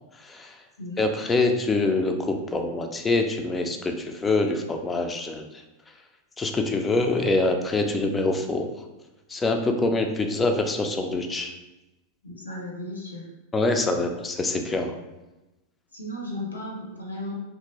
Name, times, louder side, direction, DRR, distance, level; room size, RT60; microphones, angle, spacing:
voice 1, 1.0-5.4 6.4-8.7 9.3-11.5 13.5-14.9, left 2 dB, 15° left, 5 dB, 0.3 m, -25 dB
voice 2, 12.2-13.3 15.9-17.3, left 1 dB, 80° left, -2 dB, 0.7 m, -35 dB
2.8 x 2.5 x 2.7 m, 1.0 s
figure-of-eight pair, 90°, 0 cm